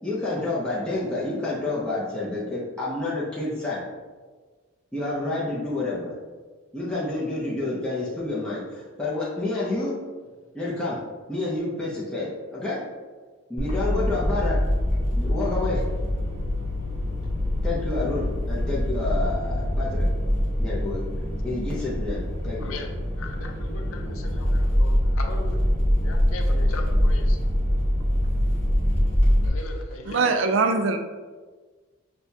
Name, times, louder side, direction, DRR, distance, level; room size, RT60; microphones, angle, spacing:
voice 1, 0.0-3.8 4.9-6.1 6.7-9.9 10.5-11.0 11.3-12.8 13.5-14.6 15.2-15.8 17.6-20.1 20.6-22.6, left 2 dB, 5° left, -8 dB, 0.6 m, -29 dB
sound 1, 13.6-29.5, equal, 30° left, 0.9 m, -24 dB
voice 2, 22.6-25.7 26.0-27.4 29.4-30.7, left 3 dB, 70° left, 4 dB, 0.5 m, -39 dB
voice 3, 30.1-31.0, right 4 dB, 60° right, 7 dB, 0.3 m, -21 dB
6.3 x 2.3 x 2.7 m, 1.4 s
head